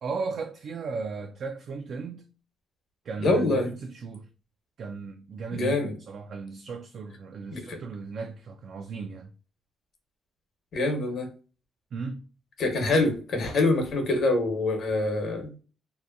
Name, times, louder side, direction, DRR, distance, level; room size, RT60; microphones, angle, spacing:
voice 1, 0.0-2.2 3.0-4.3 4.8-5.8 6.1-9.3 11.9-12.2, right 4 dB, 60° right, 0.3 m, -36 dB
voice 2, 3.2-3.7 5.5-5.9 7.5-7.8 10.7-11.3 12.6-15.5, left 2 dB, 60° left, 1.0 m, -25 dB
2.7 x 2.2 x 2.4 m
cardioid pair, 90°, 0 cm